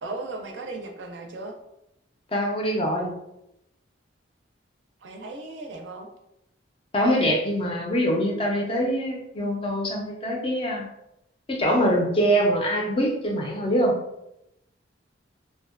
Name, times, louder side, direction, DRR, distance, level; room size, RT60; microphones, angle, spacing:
voice 1, 0.0-1.5 5.0-6.1, right 2 dB, 65° right, 2 dB, 0.4 m, -36 dB
voice 2, 2.3-3.2 6.9-10.9 11.5-14.0, equal, 25° left, 1 dB, 0.4 m, -24 dB
2.6 x 2.1 x 2.4 m, 0.83 s
head